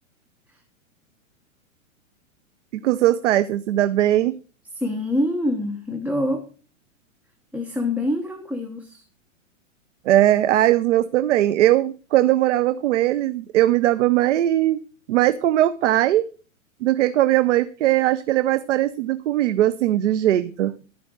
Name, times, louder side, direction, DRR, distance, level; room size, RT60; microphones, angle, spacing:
voice 1, 2.7-4.4 10.1-14.8 15.1-16.3 16.8-20.8, right 13 dB, 60° right, 13 dB, 0.7 m, -19 dB
voice 2, 4.7-6.4 7.5-9.0, left 1 dB, 5° right, 2 dB, 1.0 m, -25 dB
14.0 x 5.0 x 6.2 m, 0.39 s
hypercardioid pair, 115°, 41 cm